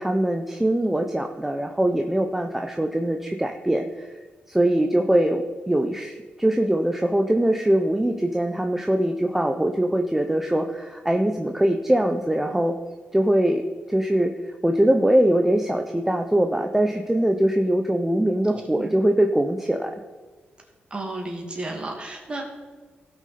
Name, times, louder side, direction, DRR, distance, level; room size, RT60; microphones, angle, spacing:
voice 1, 0.0-4.1 4.5-12.7 13.1-13.6 13.9-19.9, right 1 dB, 10° right, 4 dB, 0.6 m, -22 dB
voice 2, 20.9-22.5, right 2 dB, 30° right, 1 dB, 2.3 m, -32 dB
16.5 x 6.2 x 4.2 m, 1.4 s
wide cardioid pair, 125°, 4 cm